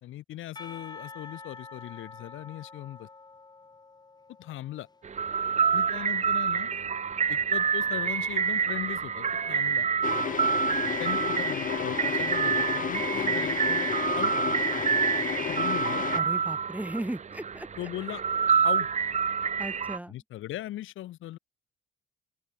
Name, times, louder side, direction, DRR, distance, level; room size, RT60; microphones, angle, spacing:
voice 1, 0.0-3.1 4.4-4.9 5.7-6.7 7.3-9.9 11.0-13.9 14.2-14.3 15.5-16.1 17.8-18.2 18.6-18.9 20.1-21.4, left 14 dB, 80° left, 2.0 m, -39 dB
Percussion, 0.6-5.4, left 3 dB, 20° left, 1.0 m, -47 dB
sound 1, 5.0-20.0, right 6 dB, 35° right, 0.9 m, -27 dB
sound 2, 10.0-16.2, left 8 dB, 40° left, 0.7 m, -32 dB
voice 2, 16.1-17.7 19.6-20.1, right 1 dB, 5° right, 0.8 m, -36 dB
cardioid pair, 90°, 20 cm